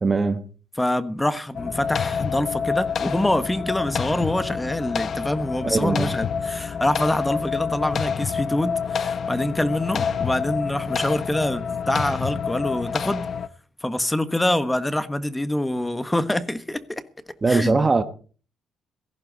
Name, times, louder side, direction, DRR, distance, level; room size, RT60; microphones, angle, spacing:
voice 1, 0.0-0.4 5.6-6.1 17.4-18.0, right 3 dB, 30° right, 1.2 m, -21 dB
voice 2, 0.8-13.3 13.8-17.0 17.5-17.8, left 1 dB, 10° left, 1.4 m, -25 dB
sound 1, 1.5-13.5, left 6 dB, 55° left, 0.9 m, -28 dB
17.0 x 14.5 x 4.1 m
cardioid pair, 90°, 0 cm